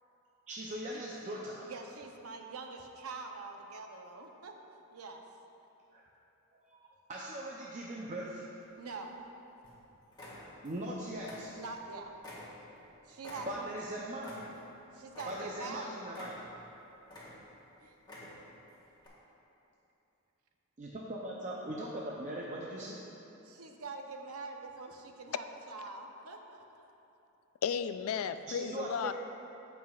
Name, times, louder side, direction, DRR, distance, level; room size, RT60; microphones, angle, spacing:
voice 1, 0.5-1.7 5.9-6.0 6.5-8.4 10.6-11.5 13.5-14.4 15.3-16.3 20.8-23.1 28.5-29.1, right 1 dB, 35° right, 0.5 m, -40 dB
voice 2, 1.7-4.5 4.9-5.2 8.8-9.2 11.6-12.1 13.0-13.7 14.9-16.0 17.8-17.9 23.4-24.9 25.2-26.9, right 3 dB, 80° right, 0.7 m, -44 dB
sound 1, 8.6-9.3 9.6-9.8 10.1-10.9 11.1-11.9 12.2-14.8 15.1-15.7 16.1-16.7 17.0-17.6 18.0-18.6 19.0-19.1, left 1 dB, 20° left, 1.6 m, -49 dB
voice 3, 27.6-29.1, left 7 dB, 70° left, 0.3 m, -34 dB
15.0 x 5.6 x 2.4 m
head